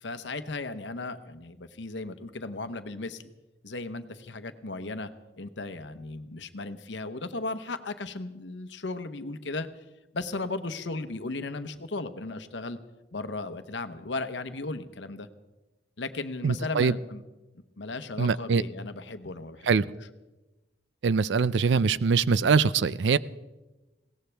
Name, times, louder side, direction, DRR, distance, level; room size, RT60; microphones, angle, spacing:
voice 1, 0.0-3.2 3.6-5.1 5.4-9.7 10.1-12.8 13.1-15.3 16.0-17.2 17.8-19.9, left 3 dB, 80° left, 10 dB, 0.9 m, -36 dB
voice 2, 16.4-16.9 18.2-18.6 19.7-19.8 21.0-23.2, right 5 dB, 80° right, 18 dB, 0.4 m, -23 dB
21.5 x 17.5 x 3.4 m, 1.1 s
head